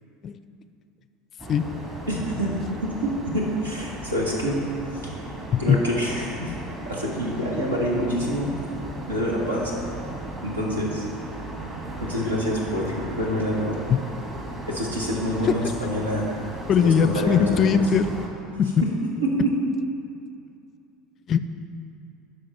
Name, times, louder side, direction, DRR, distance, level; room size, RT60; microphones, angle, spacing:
sound 1, 1.4-18.3, right 1 dB, 25° right, 1.9 m, -36 dB
voice 1, 2.1-4.6 5.0-5.3 5.6-6.6 6.9-8.5 9.1-9.8 10.4-11.1 12.0-13.8 14.7-16.3 16.8-17.8 19.2-19.5, equal, 85° right, -2 dB, 1.5 m, -26 dB
voice 2, 16.7-18.1 18.6-18.7 21.3-21.4, left 7 dB, 40° left, 12 dB, 0.4 m, -20 dB
12.0 x 5.0 x 4.4 m, 2.5 s
figure-of-eight pair, 75°, 0 cm